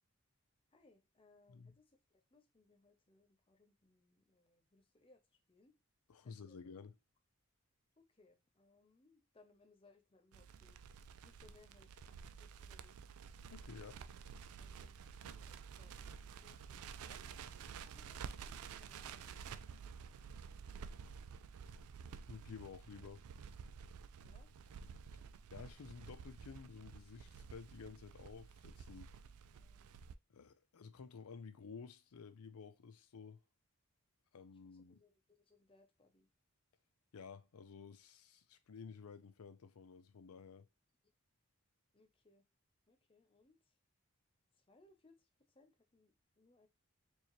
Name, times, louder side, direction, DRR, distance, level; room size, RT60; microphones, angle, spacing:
voice 1, 0.7-5.7 6.2-6.6 8.0-10.8 11.2-13.0 14.6-19.7 24.2-24.5 29.5-30.0 34.8-36.3 41.9-42.4 42.9-43.8 44.5-46.7, left 3 dB, 25° left, 0.6 m, -69 dB
voice 2, 6.1-6.9 13.5-14.0 22.3-23.2 25.5-29.1 30.3-33.4 34.3-35.0 37.1-40.7, left 5 dB, 90° left, 0.5 m, -53 dB
Crackle, 10.3-30.1, right 6 dB, 85° right, 0.4 m, -51 dB
4.5 x 2.8 x 3.0 m
head